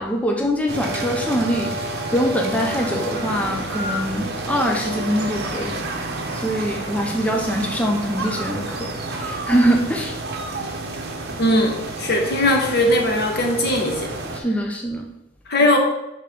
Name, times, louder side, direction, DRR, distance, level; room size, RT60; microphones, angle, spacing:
voice 1, 0.0-5.8 6.3-10.2 14.3-15.1, equal, 5° left, 1 dB, 0.5 m, -23 dB
sound 1, 0.7-14.4, right 2 dB, 55° right, 1.0 m, -29 dB
voice 2, 11.4-14.1 15.5-15.8, left 1 dB, 55° left, 2 dB, 1.2 m, -19 dB
10.5 x 3.6 x 3.6 m, 0.92 s
head